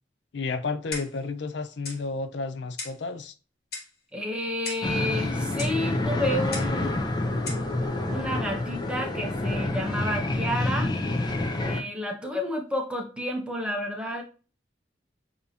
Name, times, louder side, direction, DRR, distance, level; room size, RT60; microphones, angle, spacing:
voice 1, 0.3-3.3, left 4 dB, 75° left, 0.5 m, -32 dB
Clock, 0.9-1.3 1.8-2.0 2.8-3.0 3.7-4.0 4.6-4.9 5.6-5.8 6.5-6.8 7.5-7.7, left 3 dB, 55° left, 1.5 m, -37 dB
voice 2, 4.1-6.9 8.0-10.9 11.6-14.2, left 1 dB, 5° right, 0.8 m, -30 dB
sound 1, 4.8-11.8, left 2 dB, 25° left, 0.6 m, -28 dB
6.7 x 2.8 x 2.8 m
head